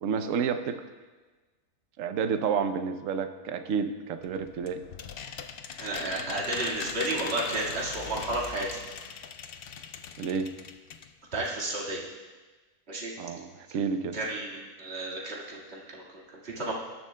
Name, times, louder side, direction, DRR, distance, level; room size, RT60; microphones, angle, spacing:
voice 1, 0.0-0.8 2.0-4.8 10.2-10.5 13.2-14.2, right 6 dB, 65° right, 8 dB, 1.0 m, -30 dB
sound 1, 4.2-11.1 11.4-11.5 11.8-11.9, left 7 dB, 65° left, 0.6 m, -40 dB
voice 2, 5.8-8.8 11.3-12.0 12.9-13.1 14.1-16.7, right 2 dB, 45° right, -4 dB, 2.1 m, -32 dB
19.0 x 11.0 x 2.2 m, 1.3 s
omnidirectional pair, 1.6 m